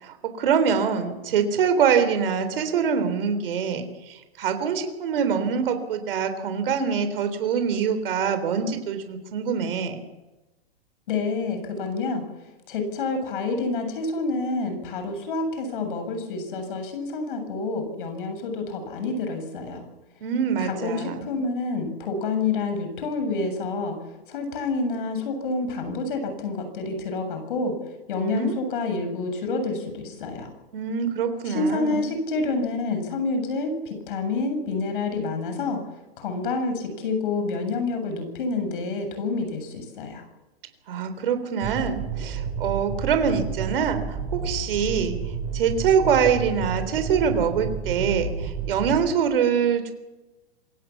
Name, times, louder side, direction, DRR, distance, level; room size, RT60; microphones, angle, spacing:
voice 1, 0.0-10.0 20.2-21.3 28.2-28.5 30.7-32.1 40.9-45.2 45.5-49.9, right 7 dB, 60° right, 9 dB, 3.8 m, -24 dB
voice 2, 11.1-12.3 12.7-19.8 20.6-24.0 24.3-27.8 28.1-30.5 31.5-35.8 36.2-40.2, left 3 dB, 55° left, 7 dB, 7.3 m, -28 dB
sound 1, 41.6-49.0, right 6 dB, 20° right, 6.9 m, -31 dB
27.0 x 17.0 x 7.2 m, 1.1 s
hypercardioid pair, 150°, 31 cm